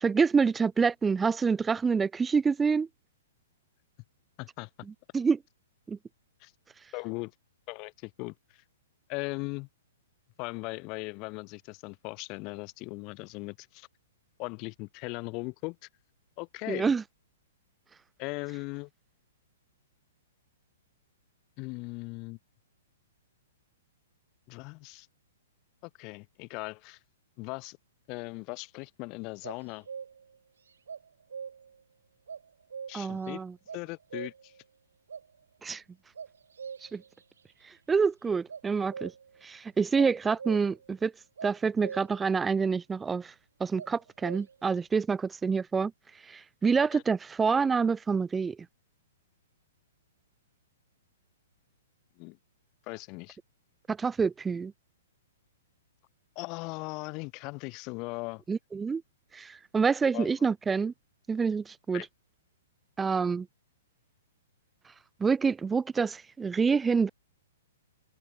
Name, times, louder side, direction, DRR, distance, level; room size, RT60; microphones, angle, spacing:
voice 1, 0.0-2.9 5.1-5.4 5.9-6.0 16.7-17.0 32.9-33.5 35.6-35.8 36.9-37.0 37.9-39.1 39.4-41.1 41.4-43.3 43.6-45.9 46.3-48.6 53.9-54.7 58.5-59.0 59.3-60.9 61.3-62.1 63.0-63.5 65.2-67.1, right 5 dB, 10° right, 0.5 m, -27 dB
voice 2, 4.4-4.7 6.4-6.5 6.9-7.3 7.7-8.6 9.1-9.7 10.4-13.9 14.4-15.8 16.4-16.9 18.2-18.9 21.6-22.4 24.5-25.1 25.8-27.0 27.4-27.8 28.1-29.9 32.9-33.4 33.7-34.5 40.2-40.4 46.8-47.0 52.2-52.4 52.9-53.4 56.4-58.4 60.1-60.5 61.9-62.1, left 28 dB, 35° left, 3.8 m, -39 dB
sound 1, 29.4-30.4 30.9-31.8 32.3-33.3 33.7-34.6 35.1-35.3 36.2-37.2 38.5-39.4 40.0-40.9 41.4-42.3 43.8-44.7, right 6 dB, 85° right, 4.0 m, -43 dB
hypercardioid pair, 140°, 0 cm